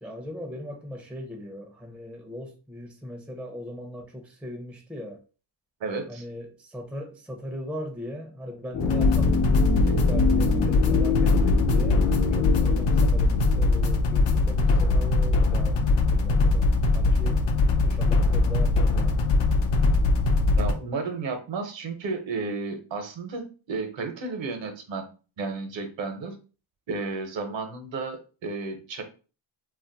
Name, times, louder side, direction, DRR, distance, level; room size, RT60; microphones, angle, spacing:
voice 1, 0.0-5.2 6.1-17.5 17.8-19.2, left 1 dB, ahead, 0.6 m, -39 dB
voice 2, 5.8-6.2 20.6-25.1 25.4-26.4 26.9-29.0, right 4 dB, 60° right, 0.9 m, -32 dB
sound 1, 8.7-14.7 15.0-15.1, left 5 dB, 85° left, 0.8 m, -28 dB
sound 2, 8.8-20.7, left 3 dB, 60° left, 0.6 m, -21 dB
2.5 x 2.0 x 3.9 m
cardioid pair, 85°, 50 cm